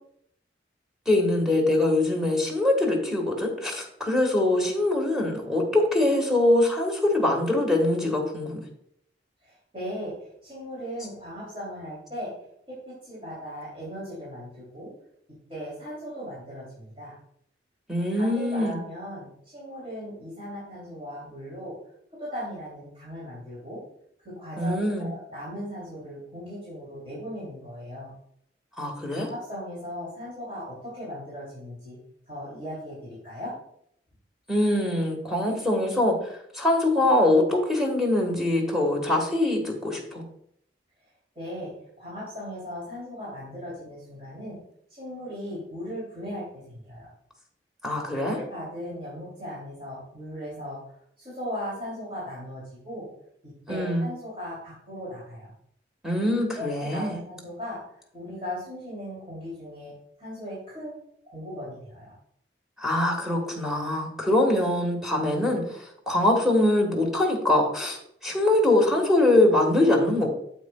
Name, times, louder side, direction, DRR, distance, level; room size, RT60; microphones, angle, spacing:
voice 1, 1.0-8.6 17.9-18.8 24.6-25.1 28.8-29.3 34.5-40.2 47.8-48.4 53.7-54.0 56.0-57.2 62.8-70.3, left 1 dB, 5° right, 0 dB, 1.5 m, -23 dB
voice 2, 9.4-12.3 12.7-14.9 15.5-17.1 18.1-21.7 22.2-23.8 24.2-28.1 29.1-32.0 32.3-33.5 41.3-41.7 42.0-44.6 44.9-47.1 48.3-50.8 51.2-53.1 53.4-55.5 56.5-57.8 58.1-59.9 60.2-60.9 61.2-62.1, equal, 30° right, -8 dB, 3.1 m, -37 dB
9.3 x 7.7 x 2.3 m, 0.69 s
head